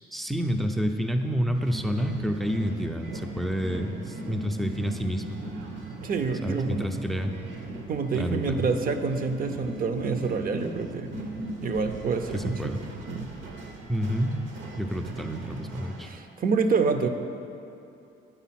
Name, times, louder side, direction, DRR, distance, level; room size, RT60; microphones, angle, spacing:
voice 1, 0.1-5.4 6.4-7.3 8.2-8.7 12.3-12.8 13.9-14.4 14.8-16.1, equal, ahead, 5 dB, 0.4 m, -29 dB
sound 1, 1.5-16.1, right 2 dB, 70° right, 1.0 m, -40 dB
voice 2, 6.0-7.0 7.9-11.1 11.6-12.8 13.1-13.3 14.8-14.9 16.1-17.1, right 4 dB, 45° right, 7 dB, 0.6 m, -27 dB
9.1 x 3.8 x 5.8 m, 2.6 s
cardioid pair, 90°, 20 cm